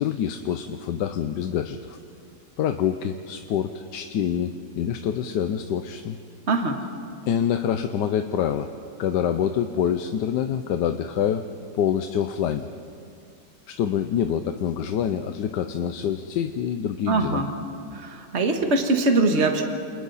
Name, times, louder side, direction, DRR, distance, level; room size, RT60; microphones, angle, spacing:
voice 1, 0.0-2.0 2.6-4.5 4.8-6.2 7.3-8.7 9.0-11.5 11.8-12.7 13.7-17.4, left 9 dB, 80° left, 8 dB, 1.4 m, -26 dB
voice 2, 6.5-6.8 17.1-17.5 17.9-19.6, right 3 dB, 40° right, 4 dB, 1.8 m, -22 dB
28.5 x 28.5 x 4.1 m, 2.3 s
omnidirectional pair, 1.9 m